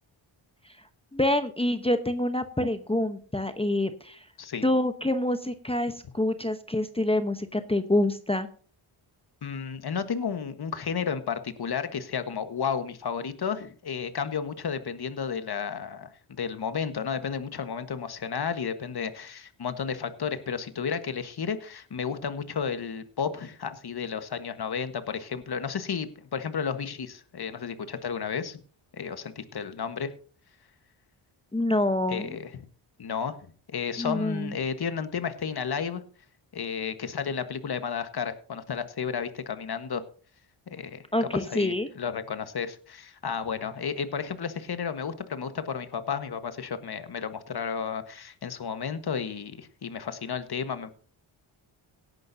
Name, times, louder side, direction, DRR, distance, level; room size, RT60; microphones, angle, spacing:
voice 1, 0.6-4.3 4.6-8.5 31.5-32.4 34.0-34.6 41.1-41.9, left 1 dB, 10° left, 8 dB, 1.0 m, -27 dB
voice 2, 9.4-28.6 28.9-30.1 32.1-32.5 33.0-36.0 36.5-40.0 40.7-41.0 41.3-50.9, left 6 dB, 50° left, 10 dB, 1.5 m, -32 dB
17.5 x 10.5 x 2.8 m, 0.42 s
cardioid pair, 80°, 49 cm